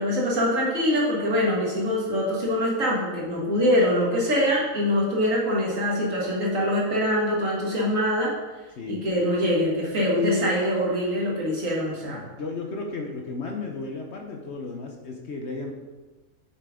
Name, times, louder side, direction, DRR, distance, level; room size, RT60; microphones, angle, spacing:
voice 1, 0.0-8.3 8.9-12.2, equal, 65° right, -4 dB, 2.3 m, -24 dB
voice 2, 8.8-9.1 12.2-15.7, left 3 dB, 55° left, 2 dB, 1.0 m, -34 dB
7.5 x 6.7 x 3.7 m, 1.2 s
omnidirectional pair, 1.5 m